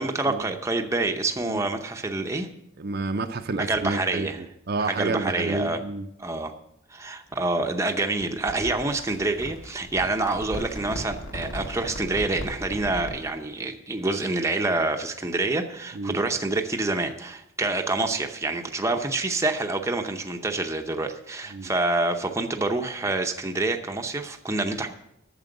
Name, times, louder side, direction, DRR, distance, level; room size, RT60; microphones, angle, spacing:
voice 1, 0.0-2.5 3.6-4.4 4.9-5.8 6.2-6.5 6.9-24.9, right 2 dB, 15° right, 0.7 m, -27 dB
voice 2, 2.8-6.1 15.9-16.2 21.5-21.7, right 3 dB, 50° right, 0.6 m, -30 dB
sound 1, 8.2-13.3, equal, 65° left, 1.9 m, -37 dB
9.0 x 6.9 x 7.7 m
head